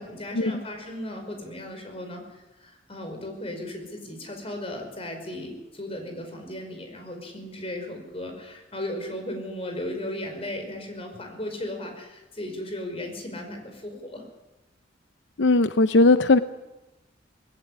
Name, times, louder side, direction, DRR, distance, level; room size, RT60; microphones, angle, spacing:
voice 1, 0.0-14.2, left 1 dB, 35° left, 4 dB, 5.1 m, -36 dB
voice 2, 15.4-16.4, left 2 dB, 85° left, 12 dB, 0.7 m, -18 dB
20.0 x 16.5 x 9.8 m, 1.0 s
head